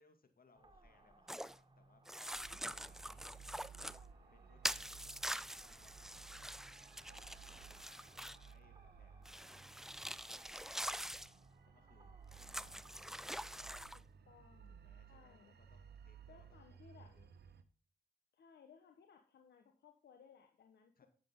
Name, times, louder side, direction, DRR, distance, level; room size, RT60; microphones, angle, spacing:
voice 1, 0.0-3.3 3.6-3.7 4.3-6.5 6.9-11.2 11.6-13.9 14.8-17.3 21.0-21.1, left 4 dB, 60° left, 7 dB, 2.3 m, -71 dB
sound 1, 0.5-13.9, right 2 dB, 30° right, 1.7 m, -65 dB
sound 2, 1.3-1.6 2.1-4.0 4.6-8.5 9.3-11.3 12.3-14.0, equal, ahead, 0.4 m, -45 dB
sound 3, 2.3-17.6, right 7 dB, 70° right, 0.9 m, -59 dB
voice 2, 5.2-5.6 14.2-15.6 16.3-17.1 18.3-21.1, left 7 dB, 80° left, 4 dB, 1.2 m, -63 dB
10.5 x 7.5 x 3.7 m, 0.40 s
cardioid pair, 50°, 17 cm